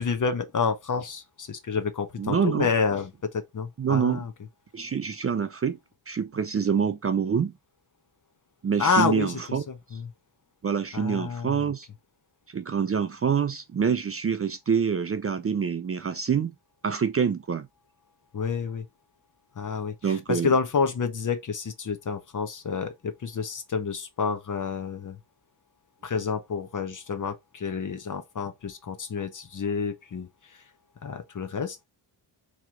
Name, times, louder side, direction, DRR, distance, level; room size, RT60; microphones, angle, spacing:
voice 1, 0.0-4.3 8.8-10.1 10.9-11.7 18.3-18.9 19.6-25.2 26.0-30.6 31.0-31.8, left 5 dB, 40° left, 0.9 m, -29 dB
voice 2, 2.2-2.7 3.8-4.2 4.7-5.8 6.1-7.5 8.6-9.6 10.6-11.9 12.5-16.5 16.8-17.7 20.0-20.5, right 7 dB, 30° right, 0.5 m, -26 dB
3.1 x 2.9 x 3.6 m
cardioid pair, 60°, 47 cm